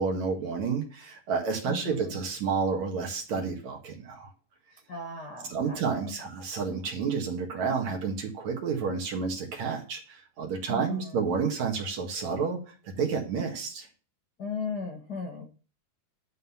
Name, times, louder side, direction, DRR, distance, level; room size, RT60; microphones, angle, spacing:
voice 1, 0.0-4.3 5.5-13.9, right 5 dB, 55° right, 1 dB, 2.7 m, -30 dB
voice 2, 1.6-2.2 4.9-5.8 10.7-11.2 14.4-15.5, left 4 dB, 80° left, 3 dB, 0.9 m, -36 dB
11.5 x 4.0 x 7.0 m, 0.38 s
omnidirectional pair, 4.2 m